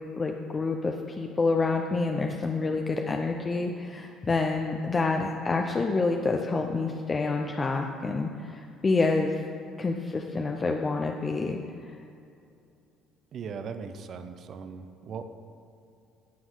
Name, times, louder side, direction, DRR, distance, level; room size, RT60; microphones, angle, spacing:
voice 1, 0.1-9.3 9.8-11.6, left 3 dB, 30° left, 3 dB, 0.7 m, -28 dB
voice 2, 13.3-15.2, right 6 dB, 55° right, 9 dB, 0.7 m, -38 dB
17.0 x 6.1 x 4.0 m, 2.5 s
hypercardioid pair, 55°, 0 cm